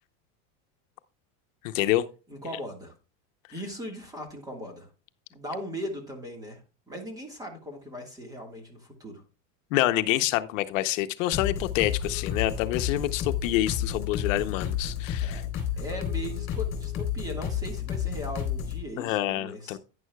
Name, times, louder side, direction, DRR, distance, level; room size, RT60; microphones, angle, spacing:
voice 1, 1.6-2.0 9.7-15.4 19.0-19.8, left 15 dB, 85° left, 0.8 m, -27 dB
voice 2, 2.3-2.9 3.5-4.9 5.3-6.6 6.9-9.2 15.2-15.4 15.8-19.8, equal, 10° right, 1.6 m, -38 dB
sound 1, 11.3-18.8, left 8 dB, 35° left, 3.5 m, -31 dB
11.0 x 9.7 x 2.3 m
supercardioid pair, 170°, 38 cm